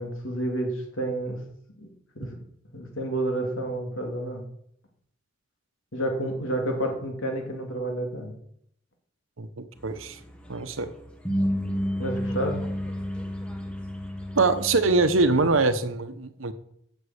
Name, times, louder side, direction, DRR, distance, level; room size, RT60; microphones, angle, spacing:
voice 1, 0.0-1.4 1.8-1.9 2.1-2.4 2.7-4.4 5.9-8.3 12.0-12.6, right 1 dB, 75° left, 2 dB, 2.9 m, -30 dB
voice 2, 9.4-10.2 10.5-10.9 14.3-16.5, right 3 dB, 80° right, 10 dB, 1.0 m, -23 dB
sound 1, 9.8-15.7, equal, 5° left, 1.4 m, -31 dB
8.1 x 7.4 x 8.2 m, 0.71 s
head